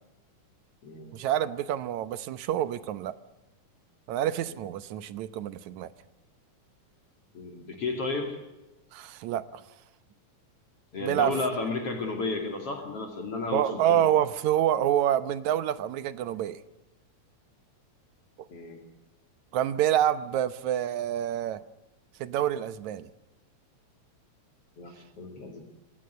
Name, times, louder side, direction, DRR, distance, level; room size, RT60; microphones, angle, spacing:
voice 1, 1.1-3.1 4.1-5.9 8.9-9.6 11.0-11.3 13.5-16.6 19.5-21.6 22.2-23.1, right 11 dB, 75° right, 14 dB, 2.2 m, -27 dB
voice 2, 7.3-8.4 10.9-14.0 18.5-18.8 24.8-25.6, left 3 dB, 50° left, 4 dB, 3.6 m, -33 dB
26.5 x 16.5 x 9.6 m, 1.0 s
omnidirectional pair, 3.5 m